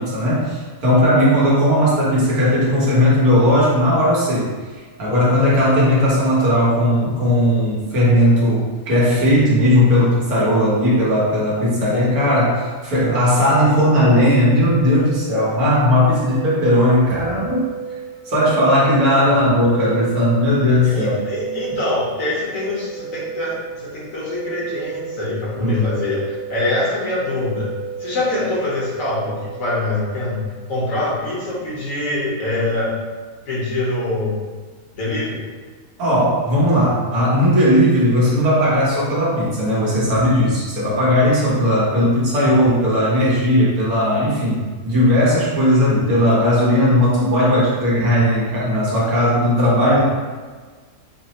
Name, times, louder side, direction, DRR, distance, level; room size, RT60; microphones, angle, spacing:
voice 1, 0.0-4.5 5.0-17.6 18.3-21.3 25.6-25.9 36.0-50.0, equal, 80° right, -7 dB, 1.7 m, -17 dB
sound 1, 11.8-30.5, right 7 dB, 60° right, 1.3 m, -34 dB
voice 2, 20.8-27.7 28.0-30.4 30.7-32.9 33.5-34.4 34.9-35.4 49.8-50.0, left 2 dB, 65° left, -6 dB, 1.5 m, -24 dB
5.5 x 2.1 x 2.9 m, 1.4 s
omnidirectional pair, 1.5 m